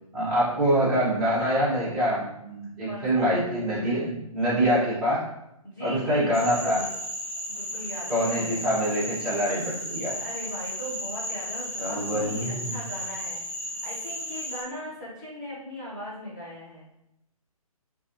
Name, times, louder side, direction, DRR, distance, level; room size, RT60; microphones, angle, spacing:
voice 1, 0.1-5.2 5.8-6.8 8.1-10.2 11.8-12.8, equal, 5° right, -10 dB, 0.3 m, -25 dB
voice 2, 2.9-3.3 5.6-7.0 7.5-8.6 10.2-13.5 13.8-16.9, left 1 dB, 30° left, -7 dB, 1.0 m, -39 dB
Frog, 6.3-14.6, equal, 60° left, 1.1 m, -34 dB
2.5 x 2.3 x 2.5 m, 0.82 s
figure-of-eight pair, 140°, 19 cm